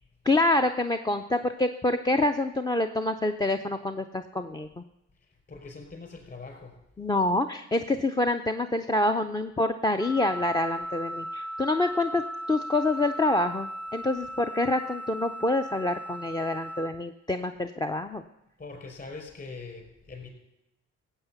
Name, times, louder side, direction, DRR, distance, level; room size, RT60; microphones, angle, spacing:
voice 1, 0.2-4.8 7.0-12.2 12.5-18.2, left 2 dB, 15° left, 7 dB, 0.5 m, -26 dB
voice 2, 5.2-6.8 18.6-20.3, left 3 dB, 30° left, 2 dB, 5.0 m, -42 dB
Wind instrument woodwind instrument, 10.0-16.9, equal, 50° left, 1.3 m, -37 dB
15.5 x 8.1 x 6.9 m, 0.90 s
cardioid pair, 90°, 30 cm